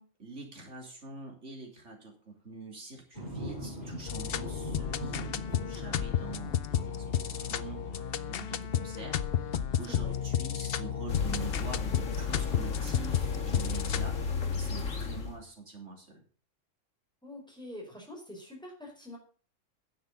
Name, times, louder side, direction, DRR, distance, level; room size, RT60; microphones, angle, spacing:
voice 1, 0.2-9.2 9.8-16.2, right 3 dB, 65° right, 1 dB, 3.5 m, -45 dB
sound 1, 3.1-10.2, right 1 dB, 30° left, 5.9 m, -43 dB
sound 2, 4.1-14.2, left 9 dB, 55° left, 0.8 m, -32 dB
sound 3, 11.1-15.4, left 5 dB, 80° left, 2.0 m, -33 dB
voice 2, 17.2-19.2, left 1 dB, 5° left, 0 dB, 4.8 m, -45 dB
10.5 x 7.7 x 6.9 m, 0.42 s
omnidirectional pair, 1.3 m